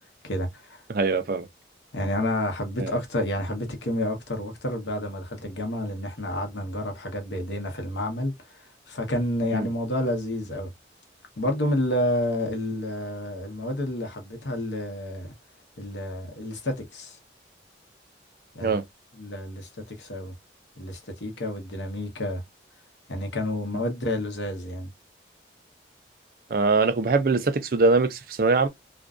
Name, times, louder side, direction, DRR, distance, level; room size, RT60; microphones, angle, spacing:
voice 1, 0.2-0.8 1.9-10.7 11.4-15.3 15.8-17.2 18.5-18.8 19.1-20.3 20.8-22.4 23.1-24.9, left 1 dB, 85° left, 0.9 m, -29 dB
voice 2, 0.9-1.5 2.8-3.0 9.5-9.7 18.6-18.8 26.5-28.7, right 3 dB, 50° right, 0.4 m, -22 dB
2.5 x 2.2 x 2.3 m
head